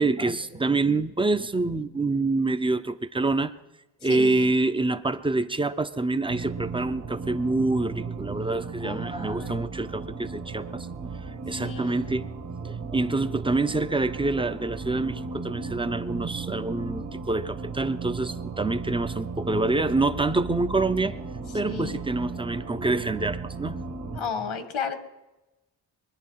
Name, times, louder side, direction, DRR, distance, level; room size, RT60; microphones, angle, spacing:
voice 1, 0.0-3.5 4.0-11.1 11.5-12.2 12.6-21.1 21.5-23.8 24.1-24.3, right 2 dB, 10° right, 11 dB, 0.5 m, -26 dB
voice 2, 4.1-4.5 8.8-9.7 11.6-12.2 21.7-22.0 24.1-24.9, left 5 dB, 80° left, 9 dB, 1.7 m, -33 dB
sound 1, 6.3-24.2, right 4 dB, 60° right, 2.0 m, -35 dB
23.0 x 10.0 x 5.6 m, 1.0 s
wide cardioid pair, 125°, 46 cm